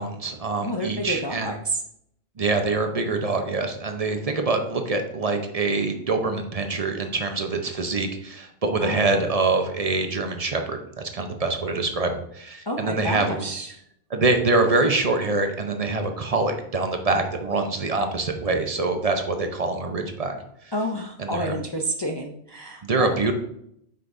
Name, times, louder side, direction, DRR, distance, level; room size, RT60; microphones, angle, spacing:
voice 1, 0.0-1.5 2.4-13.5 14.1-20.3 21.2-21.6 22.8-23.3, right 3 dB, 40° right, 5 dB, 0.7 m, -25 dB
voice 2, 0.6-1.8 8.8-9.3 12.7-13.8 20.7-23.3, equal, 35° left, 1 dB, 0.4 m, -30 dB
7.9 x 5.4 x 2.6 m, 0.74 s
omnidirectional pair, 1.2 m